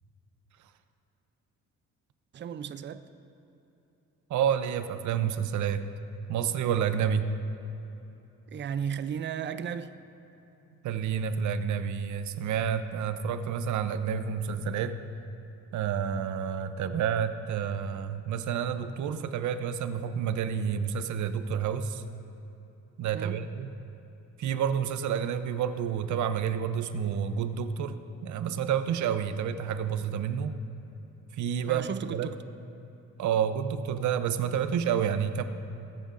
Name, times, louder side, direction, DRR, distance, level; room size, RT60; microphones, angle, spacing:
voice 1, 2.3-3.1 8.5-10.0 23.1-23.5 31.6-32.4, right 8 dB, 40° right, 12 dB, 0.5 m, -34 dB
voice 2, 4.3-5.8 6.3-7.3 10.8-15.0 15.7-22.0 23.0-23.7 24.4-30.5 31.3-31.9 32.1-32.3 33.2-35.4, right 8 dB, 70° right, 10 dB, 0.7 m, -29 dB
21.5 x 8.2 x 2.6 m, 3.0 s
cardioid pair, 90°, 30 cm